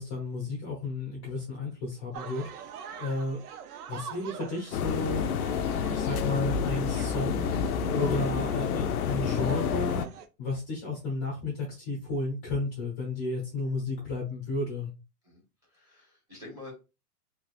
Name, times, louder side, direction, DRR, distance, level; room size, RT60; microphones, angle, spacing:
voice 1, 0.0-3.4 3.9-5.2 5.9-7.6 7.9-10.0 10.4-14.9, left 2 dB, 20° left, -2 dB, 0.7 m, -32 dB
sound 1, 2.1-10.3, right 7 dB, 70° right, 0.7 m, -45 dB
sound 2, 4.7-10.1, left 7 dB, 65° left, 0.5 m, -29 dB
voice 2, 15.2-16.7, left 2 dB, 5° right, -5 dB, 1.2 m, -48 dB
3.3 x 3.3 x 2.4 m, 0.29 s
hypercardioid pair, 170°, 48 cm